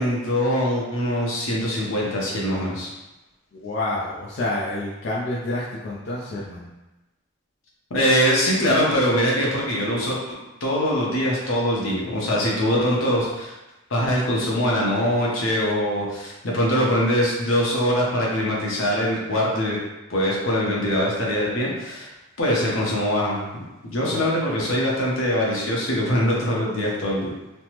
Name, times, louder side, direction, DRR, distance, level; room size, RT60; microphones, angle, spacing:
voice 1, 0.0-2.9 7.9-10.2 10.6-13.5 13.9-19.8 20.1-22.1 22.4-23.4 23.8-27.3, equal, 80° left, -4 dB, 0.8 m, -22 dB
voice 2, 3.5-6.7 24.1-24.2 24.6-24.9, left 2 dB, 55° left, -7 dB, 0.4 m, -29 dB
3.2 x 2.0 x 2.9 m, 1.0 s
head